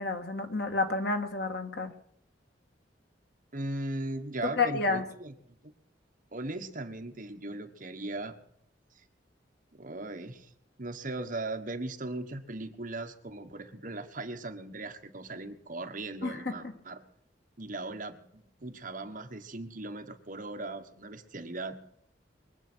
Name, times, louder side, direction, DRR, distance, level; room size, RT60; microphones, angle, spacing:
voice 1, 0.0-1.9 4.6-5.0 16.2-16.5, left 3 dB, 60° left, 6 dB, 1.7 m, -30 dB
voice 2, 3.5-5.7 6.3-8.4 9.7-10.5 10.8-17.0 17.6-21.8, right 2 dB, 45° right, 6 dB, 1.3 m, -38 dB
22.5 x 8.4 x 6.2 m, 0.67 s
head